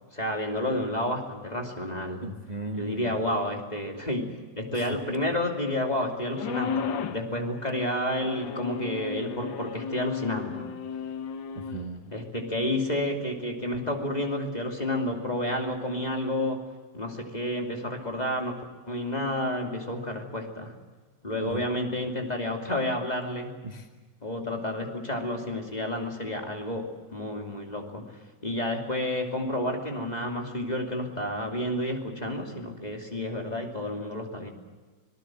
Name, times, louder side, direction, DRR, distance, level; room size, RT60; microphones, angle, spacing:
voice 1, 0.1-2.3 2.7-10.7 12.1-16.7 16.9-20.7 21.2-23.6 24.2-28.1 28.4-34.5, left 1 dB, 15° left, 2 dB, 2.5 m, -30 dB
voice 2, 2.2-3.2 4.7-4.9 11.5-12.1 21.4-21.6 23.6-23.9, right 2 dB, 25° right, 3 dB, 0.8 m, -37 dB
sound 1, 6.3-7.3 8.2-11.8, left 6 dB, 55° left, 1.4 m, -34 dB
26.0 x 19.0 x 7.5 m, 1.4 s
omnidirectional pair, 3.3 m